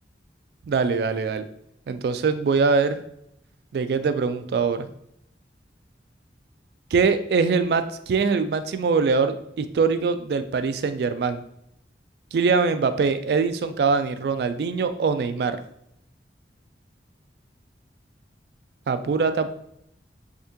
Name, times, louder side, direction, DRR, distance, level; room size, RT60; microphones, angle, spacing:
voice 1, 0.7-1.4 1.9-3.0 3.7-4.9 6.9-11.4 12.3-15.6 18.9-19.5, right 5 dB, 65° right, 10 dB, 0.3 m, -23 dB
3.6 x 3.5 x 2.7 m, 0.75 s
head